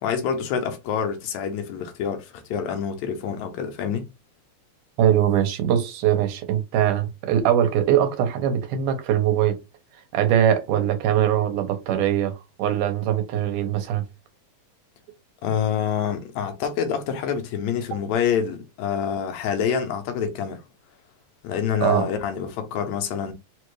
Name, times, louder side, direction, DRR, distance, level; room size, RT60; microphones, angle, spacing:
voice 1, 0.0-4.1 15.4-20.6 21.4-23.3, left 7 dB, 75° left, 1.8 m, -26 dB
voice 2, 5.0-9.6 10.1-14.0 21.8-22.1, right 10 dB, 85° right, 2.4 m, -22 dB
5.1 x 2.4 x 3.1 m
omnidirectional pair, 3.6 m